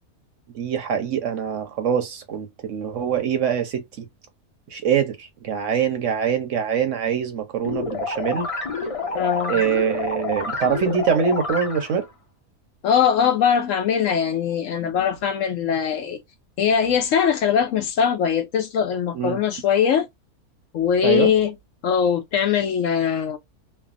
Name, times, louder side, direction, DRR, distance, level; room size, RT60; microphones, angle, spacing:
voice 1, 0.5-4.1 4.7-8.5 9.5-12.1 19.1-19.4 21.0-21.3, right 7 dB, 60° right, 0.9 m, -24 dB
sound 1, 7.6-12.1, left 3 dB, 40° left, 0.5 m, -29 dB
voice 2, 9.1-9.6 12.8-16.2 16.6-20.1 20.7-21.5 21.8-23.4, left 8 dB, 70° left, 0.8 m, -21 dB
3.3 x 2.0 x 2.4 m
omnidirectional pair, 1.6 m